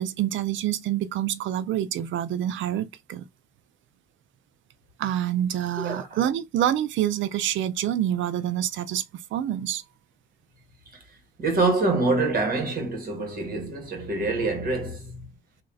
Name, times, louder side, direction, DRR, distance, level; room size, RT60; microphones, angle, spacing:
voice 1, 0.0-3.3 5.0-9.0 9.3-9.8, right 11 dB, 75° right, 0.5 m, -27 dB
voice 2, 5.8-6.2 10.9-11.0 11.4-15.3, right 3 dB, 45° right, 1.8 m, -26 dB
3.1 x 2.6 x 3.9 m
cardioid pair, 90°, 20 cm